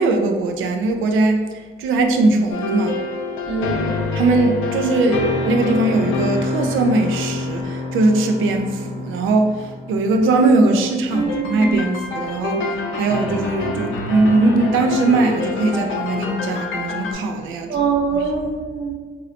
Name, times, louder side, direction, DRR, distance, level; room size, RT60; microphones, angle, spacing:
voice 1, 0.0-1.4 1.8-3.0 4.2-12.6 12.9-17.9, right 2 dB, 85° right, 4 dB, 0.5 m, -19 dB
sound 1, 2.5-10.3 11.1-17.1, left 3 dB, 85° left, 0.5 m, -26 dB
voice 2, 3.5-3.9 11.1-11.8 17.7-18.9, right 5 dB, 60° right, -1 dB, 0.9 m, -23 dB
3.1 x 2.7 x 2.7 m, 1.5 s
cardioid pair, 90°, 20 cm